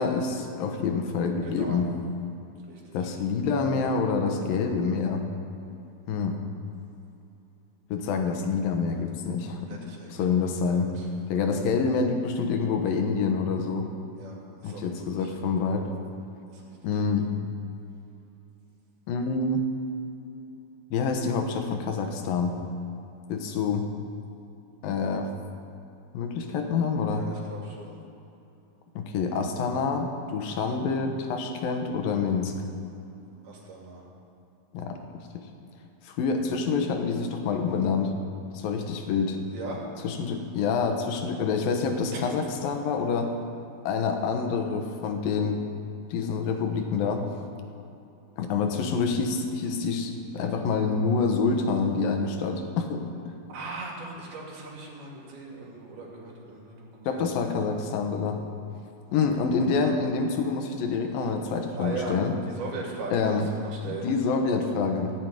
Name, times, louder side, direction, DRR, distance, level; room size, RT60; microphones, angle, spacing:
voice 1, 0.0-1.9 2.9-5.2 6.1-6.4 7.9-9.8 10.1-10.9 11.3-13.9 14.6-15.9 16.8-17.3 19.1-19.6 20.9-22.6 23.3-23.9 24.8-25.3 26.1-27.2 29.0-32.5 34.7-35.2 36.0-38.1 38.5-39.4 40.0-43.4 43.9-45.6 46.1-47.3 48.4-53.1 57.1-58.4 59.1-62.4 63.1-63.5 63.8-65.1, left 5 dB, 70° left, 5 dB, 2.8 m, -27 dB
voice 2, 1.4-1.8 2.7-3.0 9.7-10.4 10.7-11.1 14.2-14.4 14.6-14.9 15.2-15.3 16.5-16.6 27.1-28.0 33.4-34.0 39.5-39.8 42.1-42.2 53.5-57.2 61.7-62.2 62.4-64.1, right 3 dB, 75° right, -3 dB, 4.3 m, -39 dB
14.5 x 7.7 x 9.2 m, 2.8 s
omnidirectional pair, 4.4 m